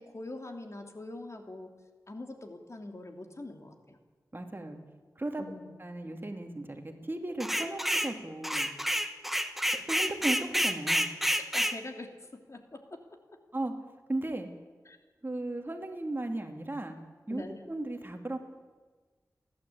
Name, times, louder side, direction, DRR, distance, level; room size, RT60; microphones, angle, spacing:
voice 1, 0.0-1.7 2.1-4.0 5.4-5.7 11.5-12.8 14.9-15.0 17.3-17.6, left 2 dB, 45° left, 4 dB, 2.9 m, -43 dB
voice 2, 4.3-4.8 5.2-5.4 5.8-8.7 9.9-11.2 13.5-13.7 14.1-14.5 15.2-17.0 17.3-18.4, right 2 dB, 30° right, 4 dB, 2.6 m, -36 dB
sound 1, 7.4-8.1 8.4-11.8, equal, 5° right, 1.4 m, -29 dB
29.5 x 11.5 x 8.6 m, 1.4 s
wide cardioid pair, 60°, 7 cm